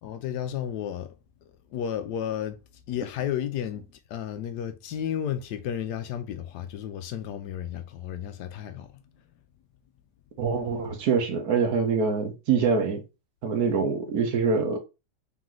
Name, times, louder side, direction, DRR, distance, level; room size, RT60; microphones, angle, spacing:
voice 1, 0.0-1.1 1.4-2.6 2.9-9.2, left 9 dB, 75° left, 1.2 m, -33 dB
voice 2, 10.4-13.0 13.4-14.8, right 5 dB, 65° right, 1.3 m, -25 dB
3.8 x 3.1 x 3.8 m
omnidirectional pair, 1.9 m